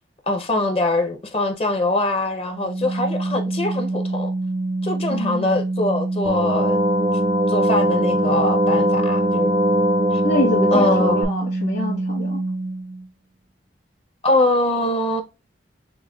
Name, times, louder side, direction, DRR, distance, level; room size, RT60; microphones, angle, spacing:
voice 1, 0.3-4.3 4.8-6.8 7.5-9.8 10.1-10.2 10.7-11.3 14.2-15.2, left 2 dB, 30° left, 0.6 m, -23 dB
Organ, 2.5-13.1, right 2 dB, 75° right, 0.6 m, -26 dB
voice 2, 5.1-5.6 10.2-12.4, left 1 dB, 60° left, 1.8 m, -25 dB
sound 1, 6.3-11.3, equal, 25° right, 0.4 m, -20 dB
6.0 x 2.2 x 2.2 m
head